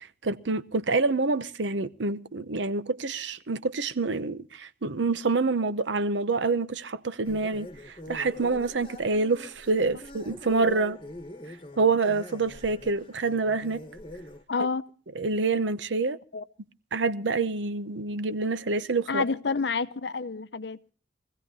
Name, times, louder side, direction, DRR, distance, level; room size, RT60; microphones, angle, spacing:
voice 1, 0.0-11.0 11.8-13.8 15.2-16.2 16.9-19.2, right 3 dB, 75° right, 0.8 m, -27 dB
sound 1, 7.2-14.4, left 1 dB, 25° left, 1.2 m, -44 dB
voice 2, 14.5-14.8 16.3-16.4 19.1-20.8, left 4 dB, 65° left, 0.7 m, -29 dB
23.5 x 16.0 x 2.7 m
head